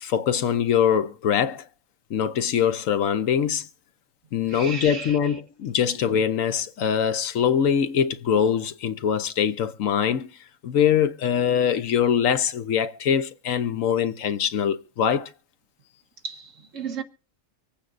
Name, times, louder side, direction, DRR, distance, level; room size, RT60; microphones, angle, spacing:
voice 1, 0.0-1.6 2.1-3.7 4.3-10.3 10.6-15.3, left 8 dB, 80° left, 1.2 m, -23 dB
voice 2, 4.5-5.3 16.2-17.0, right 5 dB, 75° right, 1.8 m, -34 dB
25.0 x 8.6 x 2.6 m
omnidirectional pair, 1.3 m